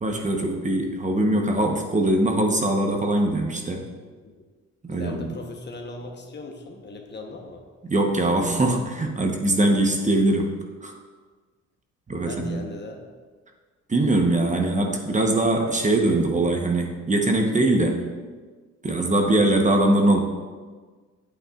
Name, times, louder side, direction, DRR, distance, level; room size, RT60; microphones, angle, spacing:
voice 1, 0.0-3.8 4.8-5.4 7.8-10.5 10.8-10.9 12.1-12.6 13.9-18.0 18.8-20.2, right 1 dB, 25° right, 2 dB, 1.0 m, -22 dB
voice 2, 4.9-7.6 12.2-13.0, left 2 dB, 35° left, 3 dB, 1.0 m, -38 dB
8.5 x 8.2 x 2.4 m, 1.4 s
cardioid pair, 90°, 30 cm